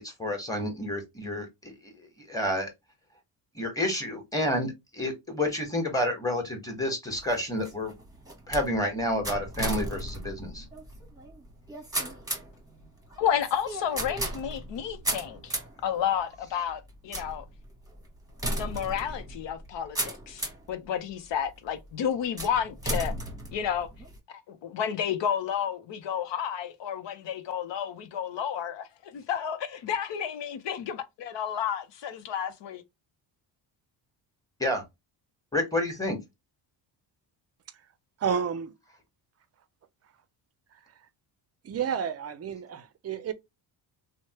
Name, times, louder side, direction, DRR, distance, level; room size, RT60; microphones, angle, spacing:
voice 1, 0.0-1.5 2.3-2.7 3.5-7.9 8.5-10.6 34.6-34.8 35.5-36.2, left 1 dB, 5° left, 1.3 m, -29 dB
sound 1, 7.1-20.7 21.3-21.8 22.4-24.2, right 1 dB, 10° right, 1.0 m, -36 dB
voice 2, 13.2-15.5 15.8-17.5 18.6-23.1 23.5-23.9 24.5-32.8, left 8 dB, 65° left, 0.7 m, -31 dB
voice 3, 38.2-38.7 41.6-43.3, right 7 dB, 35° right, 0.5 m, -30 dB
3.1 x 2.1 x 2.9 m
cardioid pair, 90°, 46 cm